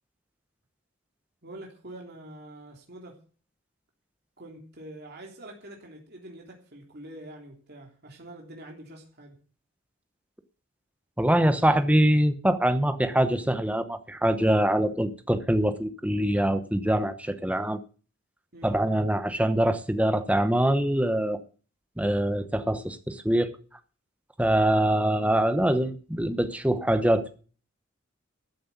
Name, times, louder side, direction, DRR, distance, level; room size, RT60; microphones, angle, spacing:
voice 1, 1.4-3.1 4.4-9.3 18.5-18.8, right 1 dB, 50° right, 3.4 m, -45 dB
voice 2, 11.2-17.8 18.6-21.4 22.0-23.5 24.4-27.3, right 1 dB, 5° right, 1.0 m, -24 dB
14.0 x 7.8 x 8.2 m
head